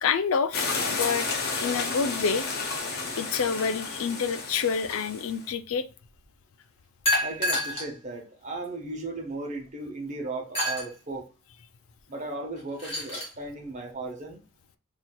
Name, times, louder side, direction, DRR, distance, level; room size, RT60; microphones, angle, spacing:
voice 1, 0.0-1.3 1.5-2.5 3.2-5.9, left 6 dB, 70° left, 0.4 m, -28 dB
sound 1, 0.5-5.5, left 4 dB, 50° left, 1.0 m, -31 dB
sound 2, 2.8-3.9 7.0-7.9 8.6-8.7 10.5-10.9 12.6-13.3, equal, 25° left, 2.3 m, -29 dB
voice 2, 7.2-11.3 12.1-14.4, right 2 dB, 35° right, 1.1 m, -36 dB
6.0 x 2.8 x 2.2 m
head